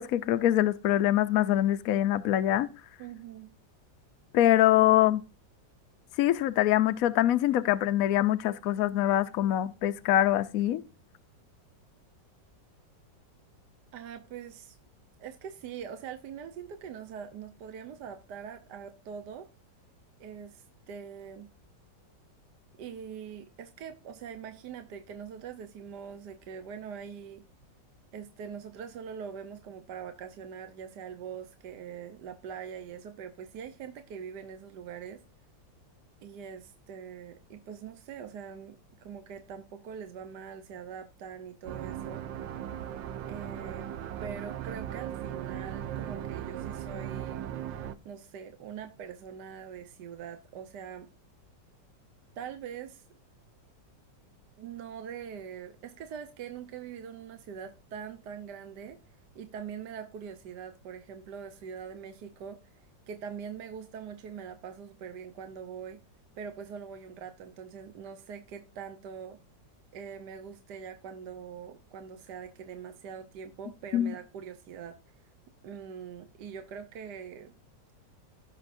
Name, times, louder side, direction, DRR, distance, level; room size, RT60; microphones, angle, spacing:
voice 1, 0.0-2.7 4.3-5.2 6.2-10.8 73.9-74.1, left 13 dB, 70° left, 0.8 m, -24 dB
voice 2, 3.0-3.5 13.9-14.8 15.2-19.5 20.2-21.5 22.8-27.4 28.1-35.2 36.2-42.2 43.3-43.9 44.2-47.5 48.0-51.1 52.4-53.0 54.6-59.0 59.3-62.6 63.1-66.0 66.4-69.4 69.9-75.0 75.6-77.5, right 7 dB, 65° right, 1.4 m, -43 dB
sound 1, 41.7-48.0, right 10 dB, 80° right, 1.4 m, -38 dB
16.5 x 6.5 x 2.5 m
omnidirectional pair, 2.0 m